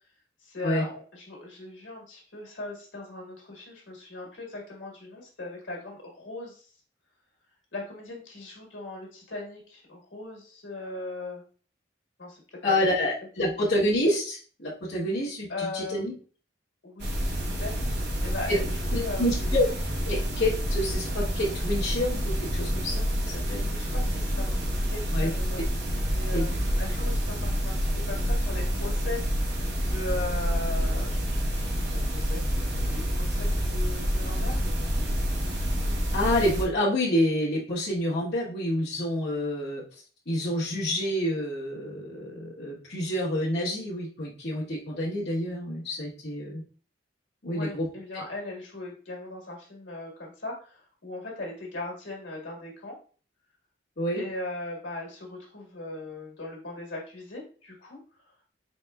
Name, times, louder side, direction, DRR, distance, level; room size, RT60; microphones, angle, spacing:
voice 1, 0.4-6.7 7.7-11.4 12.2-12.4 12.7-12.8 15.5-16.1 16.8-19.6 23.6-24.6 24.8-25.6 26.1-29.6 29.9-32.7 33.1-34.8 47.5-53.0 54.2-58.0, left 2 dB, 80° left, -1 dB, 1.6 m, -39 dB
voice 2, 12.6-16.1 18.5-18.6 18.9-19.7 20.0-23.7 25.1-25.3 26.3-26.4 36.1-39.8 40.3-46.6 47.4-47.9 48.1-48.2 54.0-54.2, left 1 dB, 60° left, -8 dB, 1.2 m, -28 dB
sound 1, 17.0-36.6, equal, 60° right, 1.0 m, -28 dB
4.2 x 4.2 x 2.3 m, 0.41 s
head